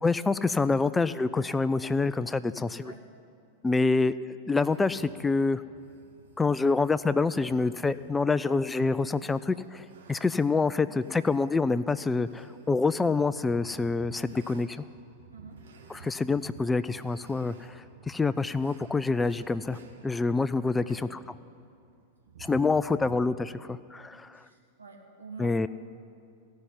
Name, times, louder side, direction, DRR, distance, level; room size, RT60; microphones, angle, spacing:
voice 1, 0.0-2.9 3.6-4.2 4.5-5.6 6.4-14.8 15.9-21.0 22.4-24.4 25.4-25.7, left 3 dB, 10° left, 15 dB, 0.3 m, -27 dB
sound 1, 4.6-23.2, right 5 dB, 65° right, 1.2 m, -54 dB
voice 2, 15.3-15.6 20.8-21.1 24.3-25.5, right 4 dB, 85° right, -1 dB, 2.1 m, -48 dB
16.0 x 5.6 x 9.6 m, 2.4 s
figure-of-eight pair, 95°, 0 cm